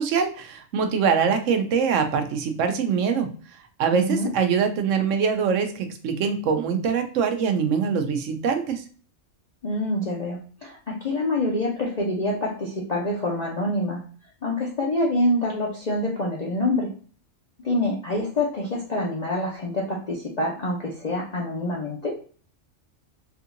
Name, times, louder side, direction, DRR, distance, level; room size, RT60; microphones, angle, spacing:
voice 1, 0.0-3.3 3.8-8.8, right 6 dB, 70° right, 6 dB, 0.9 m, -23 dB
voice 2, 3.9-4.3 9.6-14.0 14.4-16.9 17.6-22.2, left 1 dB, 45° left, -3 dB, 0.5 m, -26 dB
3.5 x 2.7 x 2.5 m, 0.43 s
omnidirectional pair, 1.4 m